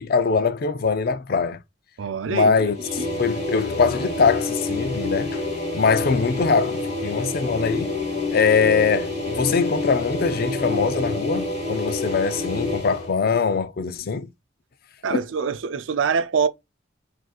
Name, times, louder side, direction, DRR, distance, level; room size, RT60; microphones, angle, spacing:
voice 1, 0.0-1.6 2.2-5.4 5.7-8.0 8.3-14.3 15.1-15.2, left 5 dB, 50° left, 0.5 m, -22 dB
voice 2, 2.0-2.7 15.0-16.5, right 6 dB, 85° right, 0.5 m, -24 dB
sound 1, 2.7-13.1, left 2 dB, 35° left, 1.9 m, -28 dB
6.1 x 2.7 x 2.3 m
head